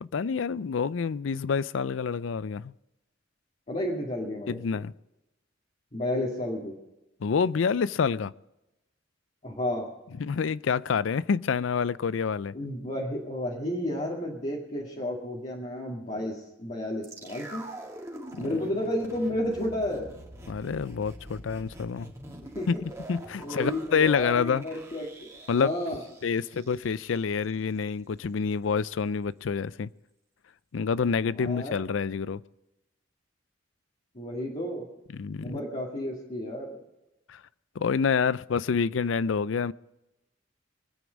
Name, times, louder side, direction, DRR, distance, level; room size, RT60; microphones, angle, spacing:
voice 1, 0.0-2.7 4.5-4.9 7.2-8.3 10.2-12.5 18.5-18.6 20.5-22.1 22.7-24.6 25.5-25.7 26.2-29.9 30.7-32.4 35.1-35.6 37.3-37.4 37.8-39.7, left 6 dB, 80° left, 0.4 m, -27 dB
voice 2, 3.7-4.6 5.9-6.7 9.4-9.9 12.5-17.7 18.4-20.1 22.5-22.8 23.4-25.3 25.5-26.0 31.3-31.7 34.1-34.9 35.4-36.8, left 1 dB, 40° left, 2.2 m, -32 dB
sound 1, 17.0-27.2 27.4-27.5, right 1 dB, 15° right, 2.3 m, -45 dB
23.5 x 9.3 x 5.2 m
head